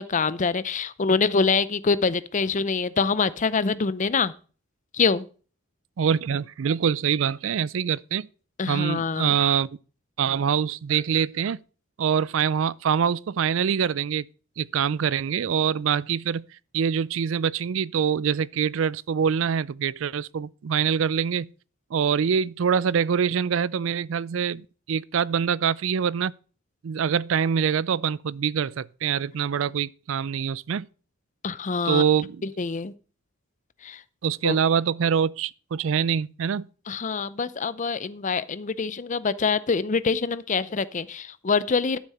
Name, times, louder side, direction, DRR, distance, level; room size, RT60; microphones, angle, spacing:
voice 1, 0.0-4.3 4.9-5.3 8.6-9.4 31.4-32.0 32.6-32.9 33.8-34.0 34.4-34.6 36.9-42.0, left 4 dB, 40° left, 0.6 m, -25 dB
voice 2, 6.0-8.3 8.7-9.7 10.2-11.6 12.0-14.3 14.6-16.4 16.7-21.5 21.9-26.3 26.8-30.9 31.8-32.4 34.2-36.7, right 7 dB, 70° right, 0.4 m, -24 dB
12.5 x 7.4 x 4.3 m
head